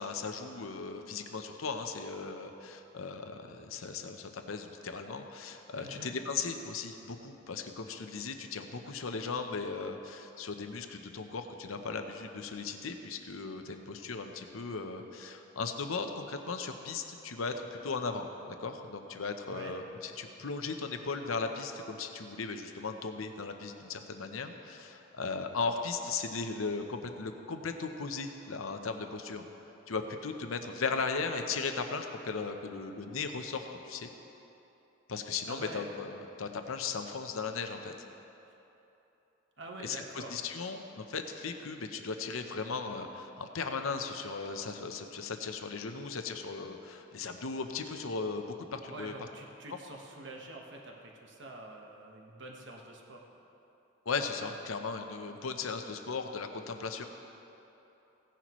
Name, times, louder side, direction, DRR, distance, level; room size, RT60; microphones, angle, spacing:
voice 1, 0.0-29.4 29.9-34.1 35.1-37.9 39.8-49.1 54.1-57.1, left 4 dB, 85° left, 6 dB, 0.8 m, -37 dB
voice 2, 5.7-6.1 19.5-19.8 35.4-35.9 39.6-40.4 48.9-53.2, right 2 dB, 60° right, 0 dB, 1.3 m, -46 dB
16.0 x 10.0 x 3.1 m, 3.0 s
head